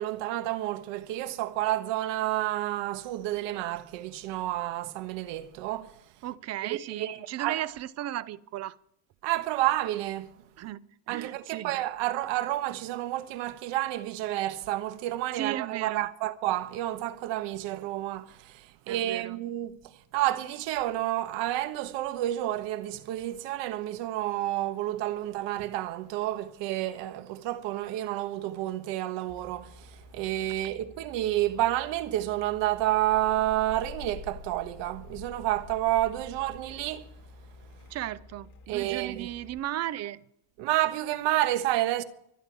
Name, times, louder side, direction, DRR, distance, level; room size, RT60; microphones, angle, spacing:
voice 1, 0.0-5.9 6.7-7.6 9.2-10.3 11.1-19.7 20.1-37.1 38.7-39.3 40.6-42.0, right 14 dB, 65° right, 1.4 m, -30 dB
voice 2, 6.2-8.8 10.6-11.8 15.3-16.1 18.9-19.4 37.9-40.2, right 13 dB, 35° right, 0.5 m, -35 dB
sound 1, 29.3-39.6, left 4 dB, 40° left, 2.3 m, -48 dB
25.5 x 9.0 x 4.6 m
cardioid pair, 150°, 47 cm